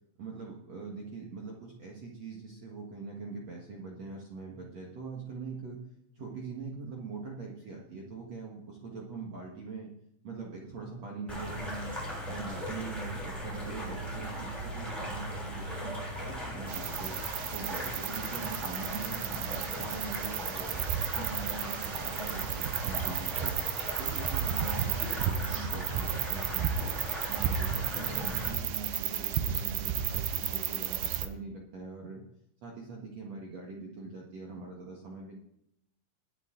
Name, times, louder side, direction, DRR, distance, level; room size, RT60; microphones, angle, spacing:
voice 1, 0.2-5.8 6.1-9.9 10.2-11.9 12.3-17.2 17.5-20.8 21.1-23.6 24.0-26.9 27.3-32.2 32.6-35.4, right 4 dB, 65° right, -2 dB, 1.7 m, -42 dB
sound 1, 11.3-28.5, equal, ahead, 6.3 m, -38 dB
sound 2, 16.7-31.3, right 10 dB, 80° right, 2.2 m, -33 dB
21.0 x 8.9 x 3.9 m, 0.77 s
omnidirectional pair, 5.5 m